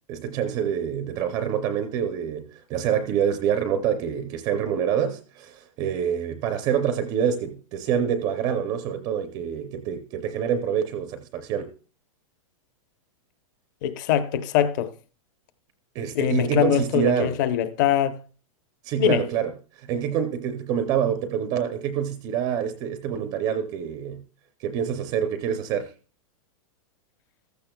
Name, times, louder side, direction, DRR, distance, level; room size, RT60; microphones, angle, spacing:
voice 1, 0.1-11.7 15.9-17.4 18.8-19.5 19.8-24.2 24.6-25.9, right 8 dB, 20° right, 0.5 m, -26 dB
voice 2, 13.8-14.9 16.1-18.2 19.0-19.2, left 10 dB, 35° left, 0.8 m, -23 dB
15.0 x 13.5 x 2.2 m
supercardioid pair, 175°, 18 cm